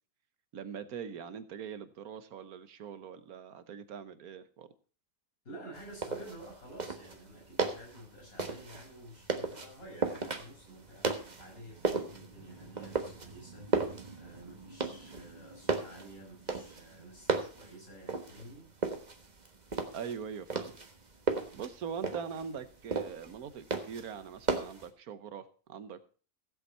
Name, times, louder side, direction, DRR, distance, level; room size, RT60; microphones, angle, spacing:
voice 1, 0.5-4.7 19.9-20.8 21.5-26.0, right 7 dB, 85° right, 12 dB, 1.5 m, -42 dB
voice 2, 5.4-18.7, right 1 dB, 75° left, -1 dB, 6.0 m, -51 dB
sound 1, 5.7-24.9, right 3 dB, 30° right, 1.3 m, -36 dB
15.5 x 8.2 x 4.3 m, 0.39 s
omnidirectional pair, 1.5 m